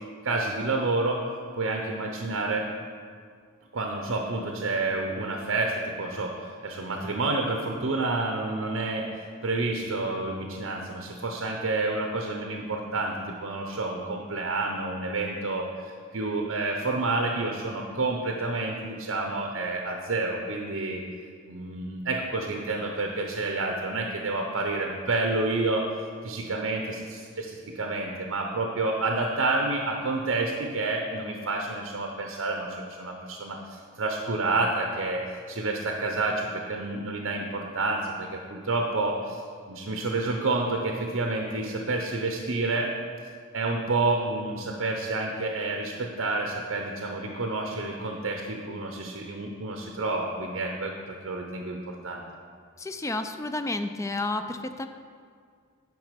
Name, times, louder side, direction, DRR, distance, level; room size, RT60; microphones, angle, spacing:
voice 1, 0.2-1.2 1.5-2.7 3.7-9.1 9.4-21.0 21.5-25.9 26.2-39.4 39.7-42.9 43.5-52.2, right 2 dB, 70° right, 2 dB, 0.7 m, -29 dB
voice 2, 52.8-54.9, left 2 dB, 15° left, 8 dB, 0.3 m, -31 dB
9.5 x 5.4 x 5.2 m, 2.1 s
head